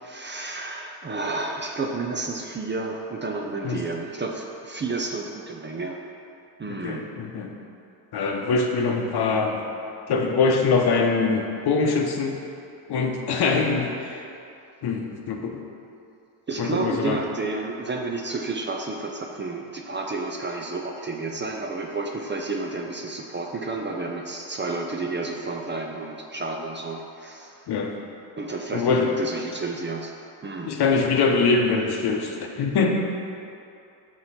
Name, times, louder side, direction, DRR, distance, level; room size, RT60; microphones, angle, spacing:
voice 1, 0.0-6.0 6.6-7.0 16.5-27.7 28.4-30.1 30.4-30.7, right 3 dB, 25° right, 1 dB, 0.5 m, -31 dB
voice 2, 6.7-7.5 8.1-9.6 10.1-12.4 12.9-14.3 14.8-15.6 16.6-17.2 27.7-27.9 28.7-29.1 30.7-32.9, left 4 dB, 55° left, 2 dB, 0.9 m, -23 dB
6.2 x 4.4 x 4.2 m, 2.6 s
supercardioid pair, 65°, 47 cm